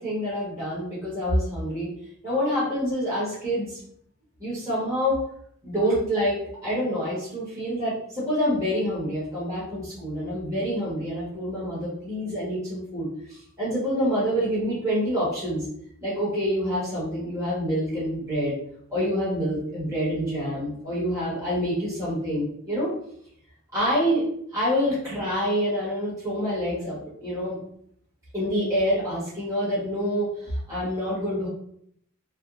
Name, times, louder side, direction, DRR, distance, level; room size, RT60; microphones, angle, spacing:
voice 1, 0.0-1.9 2.2-3.8 4.4-5.2 5.6-15.6 16.0-18.6 18.9-22.9 23.7-24.3 24.5-26.9 27.2-27.6 28.3-31.5, equal, 15° right, -10 dB, 1.2 m, -27 dB
3.4 x 2.2 x 2.5 m, 0.68 s
head